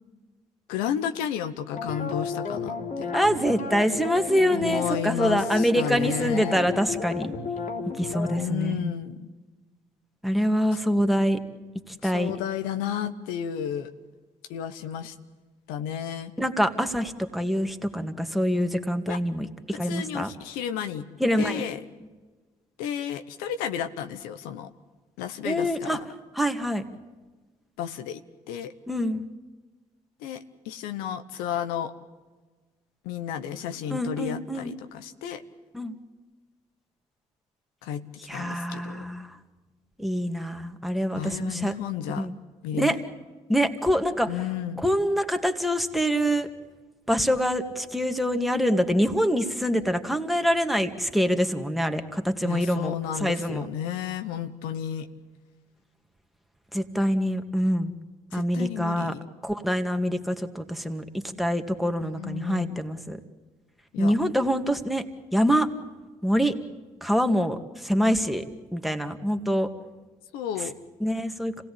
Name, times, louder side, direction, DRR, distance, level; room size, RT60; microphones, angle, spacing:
voice 1, 0.7-3.1 4.5-6.6 8.4-9.3 10.7-10.8 12.0-13.9 14.5-15.1 15.7-16.3 19.1-19.2 19.8-21.1 21.4-21.8 22.8-24.7 25.2-26.0 27.8-28.2 28.5-28.7 30.2-31.9 33.0-35.4 37.8-38.0 38.3-39.0 41.1-42.3 42.6-43.0 44.3-44.9 52.4-55.1 58.3-59.2 62.0-62.8 63.9-64.1 70.3-70.7, left 9 dB, 85° left, 9 dB, 1.0 m, -32 dB
sound 1, 1.7-8.5, left 4 dB, 65° left, 3.2 m, -33 dB
voice 2, 3.1-7.3 8.0-8.9 10.2-11.4 11.9-12.3 16.4-20.3 21.2-21.6 25.4-26.0 26.3-26.8 28.9-29.2 33.9-34.7 35.7-35.9 38.2-39.4 40.0-41.7 42.2-42.3 42.8-43.0 43.5-44.3 44.8-46.5 47.1-53.7 56.7-57.9 58.3-59.1 59.4-61.0 61.4-63.2 64.0-65.1 65.3-65.7 66.2-66.5 67.0-68.4 68.7-69.7 71.0-71.5, equal, ahead, 6 dB, 2.2 m, -25 dB
26.5 x 17.5 x 8.6 m, 1.3 s
supercardioid pair, 60°, 15 cm